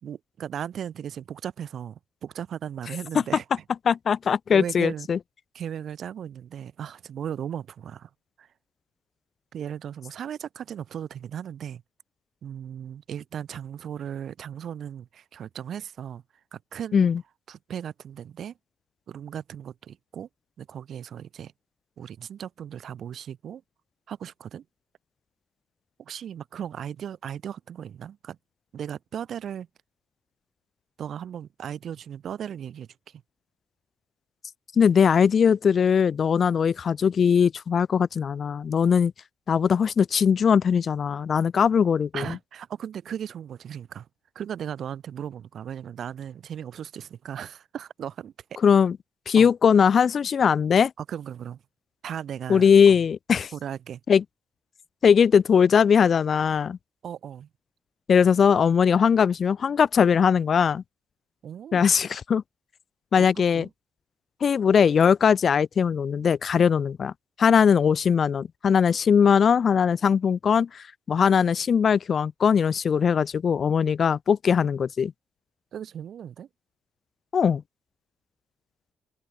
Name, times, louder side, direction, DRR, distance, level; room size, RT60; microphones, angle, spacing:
voice 1, 0.0-3.6 4.5-5.1 5.5-8.1 8.4-8.5 9.5-11.8 12.4-16.2 16.5-17.1 17.5-18.6 19.1-20.3 20.6-21.5 22.0-23.6 24.1-24.6 26.0-28.4 28.7-29.7 31.0-33.2 42.1-44.1 44.3-48.6 49.4-49.5 51.0-51.6 52.0-53.0 53.5-54.0 57.0-57.5 61.4-61.9 63.2-63.7 75.7-76.5, right 9 dB, 60° right, 2.2 m, -37 dB
voice 2, 3.9-5.2 16.9-17.2 34.8-39.1 39.5-42.3 48.6-49.0 49.3-50.9 52.5-53.5 54.1-54.2 55.0-56.8 58.1-60.8 61.7-62.4 63.1-63.7 64.4-67.1 67.4-75.1 77.3-77.6, left 7 dB, 50° left, 0.8 m, -20 dB
open air
cardioid pair, 90°, 0 cm